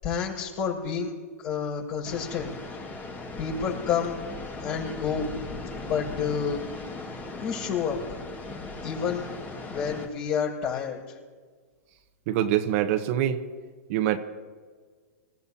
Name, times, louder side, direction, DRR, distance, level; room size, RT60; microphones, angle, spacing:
voice 1, 0.0-1.1 1.4-2.5 3.4-4.2 4.6-5.3 5.8-6.6 7.4-8.0 8.8-9.3 9.7-11.0, left 7 dB, 45° left, -3 dB, 5.9 m, -29 dB
sound 1, 2.0-10.1, left 3 dB, 20° left, 1.9 m, -38 dB
voice 2, 12.3-13.4 13.9-14.2, right 11 dB, 50° right, 7 dB, 1.1 m, -24 dB
26.0 x 15.0 x 2.9 m, 1.5 s
hypercardioid pair, 120°, 9 cm